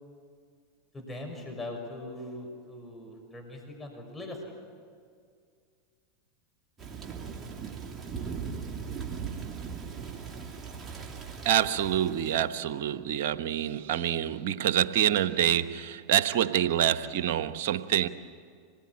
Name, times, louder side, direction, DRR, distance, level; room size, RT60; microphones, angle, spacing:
voice 1, 0.9-4.5, left 1 dB, 15° left, 2 dB, 6.1 m, -40 dB
Thunder / Rain, 6.8-12.5, right 6 dB, 25° right, 2.6 m, -39 dB
voice 2, 11.4-18.1, right 10 dB, 70° right, 11 dB, 1.1 m, -26 dB
26.5 x 20.5 x 9.9 m, 2.2 s
hypercardioid pair, 105°, 0 cm